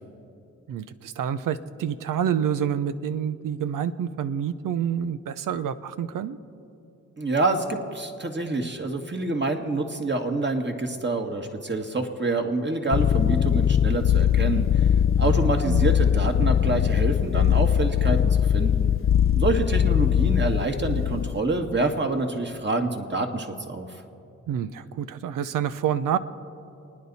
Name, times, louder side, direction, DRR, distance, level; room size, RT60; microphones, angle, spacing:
voice 1, 0.7-6.4 15.3-15.8 24.5-26.2, right 8 dB, 85° right, 13 dB, 0.7 m, -28 dB
voice 2, 7.2-14.9 15.2-18.9 19.3-23.9, right 2 dB, 35° right, 4 dB, 1.8 m, -27 dB
sound 1, 12.9-21.4, left 9 dB, 40° left, 0.5 m, -21 dB
28.5 x 9.7 x 4.2 m, 2.7 s
supercardioid pair, 45°, 32 cm